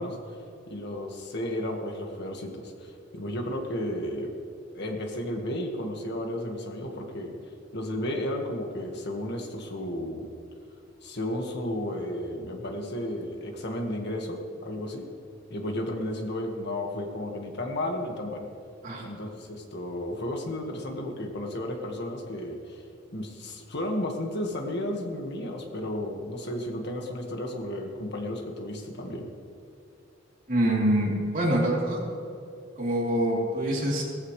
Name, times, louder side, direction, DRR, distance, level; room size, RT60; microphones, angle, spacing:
voice 1, 0.0-4.3 4.7-7.3 7.7-10.3 11.0-15.0 15.5-18.5 19.0-22.8 23.1-29.3, left 1 dB, 60° left, 2 dB, 1.7 m, -33 dB
voice 2, 30.5-32.0 32.8-34.0, right 1 dB, 45° right, -3 dB, 3.2 m, -25 dB
18.5 x 15.0 x 3.3 m, 2.5 s
head